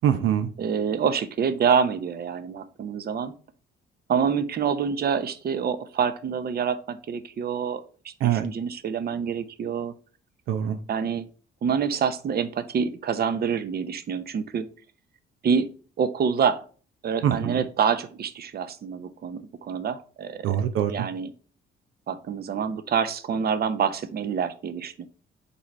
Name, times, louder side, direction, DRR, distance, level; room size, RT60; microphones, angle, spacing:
voice 1, 0.0-0.5 8.2-8.5 10.5-10.8 17.2-17.6 20.4-20.9, right 10 dB, 85° right, 9 dB, 0.7 m, -23 dB
voice 2, 0.6-3.3 4.1-9.9 10.9-11.3 11.6-14.7 15.4-15.7 16.0-16.6 17.0-20.6 20.9-21.3 22.1-25.1, right 6 dB, 50° right, 12 dB, 0.8 m, -26 dB
5.5 x 4.2 x 4.5 m, 0.38 s
cardioid pair, 90°, 20 cm